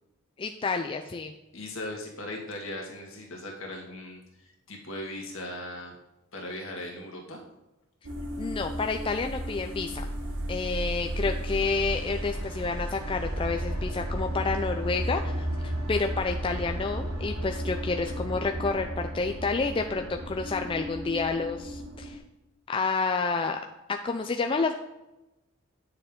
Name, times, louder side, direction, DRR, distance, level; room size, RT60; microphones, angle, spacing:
voice 1, 0.4-1.3 8.4-10.1 10.5-22.2 22.7-23.6 24.0-24.7, left 4 dB, 25° left, 4 dB, 0.4 m, -29 dB
voice 2, 1.5-6.0 6.3-7.4, left 1 dB, 65° left, 0 dB, 2.0 m, -38 dB
sound 1, 8.0-22.2, equal, 90° right, 1.4 m, -33 dB
9.8 x 6.7 x 3.7 m, 0.97 s
head